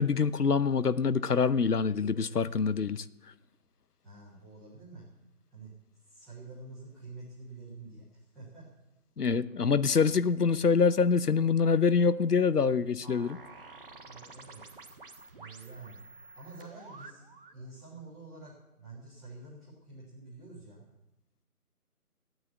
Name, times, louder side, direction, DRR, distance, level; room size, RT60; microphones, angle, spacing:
voice 1, 0.0-3.0 9.2-13.4, left 5 dB, 85° left, 0.8 m, -25 dB
voice 2, 4.0-5.1 5.5-5.7 6.1-8.6 14.0-14.6 15.3-16.0 16.3-20.9, right 3 dB, ahead, 1.3 m, -48 dB
sound 1, 13.0-17.6, right 3 dB, 35° right, 1.3 m, -50 dB
14.0 x 9.5 x 8.1 m
figure-of-eight pair, 160°, 45 cm